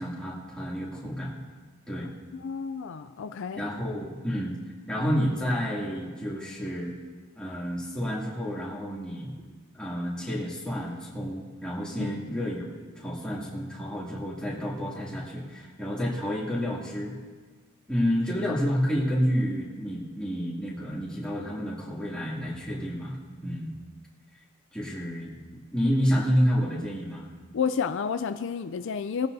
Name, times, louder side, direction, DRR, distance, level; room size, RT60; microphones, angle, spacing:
voice 1, 0.0-1.4 1.9-2.1 3.5-4.6 4.9-6.9 7.4-9.3 9.7-12.7 13.0-17.1 17.9-23.2 23.4-23.7 24.7-25.3 25.7-27.3, equal, 5° left, -7 dB, 2.6 m, -29 dB
voice 2, 2.4-3.6 12.0-12.2 27.5-29.3, left 6 dB, 60° left, 10 dB, 0.4 m, -30 dB
20.5 x 15.0 x 2.7 m, 1.5 s
head